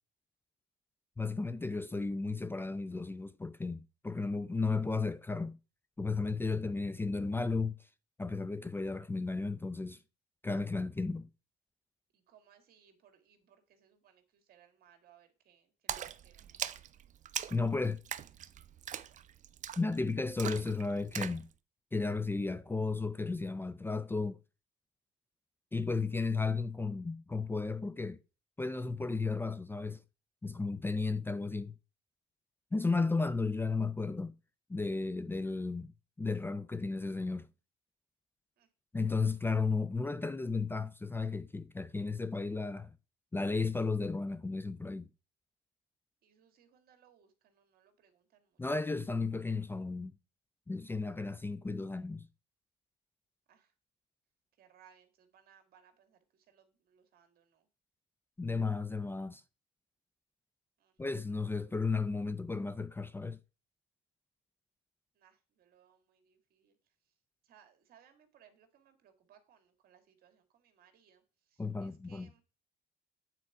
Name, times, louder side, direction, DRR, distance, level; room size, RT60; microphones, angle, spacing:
voice 1, 1.2-5.6 6.0-7.9 8.2-10.0 10.4-11.3 17.5-18.0 19.8-21.5 21.9-24.4 25.7-28.2 28.6-30.0 30.4-31.7 32.7-34.3 34.7-35.9 36.2-37.5 38.9-42.9 43.3-45.1 48.6-50.1 50.7-52.3 58.4-59.4 61.0-63.4 71.6-72.3, left 3 dB, 15° left, 0.4 m, -34 dB
voice 2, 12.1-16.8 38.6-38.7 46.2-48.6 53.5-53.7 54.5-57.7 60.8-61.0 65.1-67.1 67.4-72.4, right 8 dB, 65° right, 2.1 m, -65 dB
Splash splatter, 15.9-21.4, right 10 dB, 45° right, 0.6 m, -41 dB
8.8 x 4.5 x 4.7 m
cardioid pair, 110°, 17 cm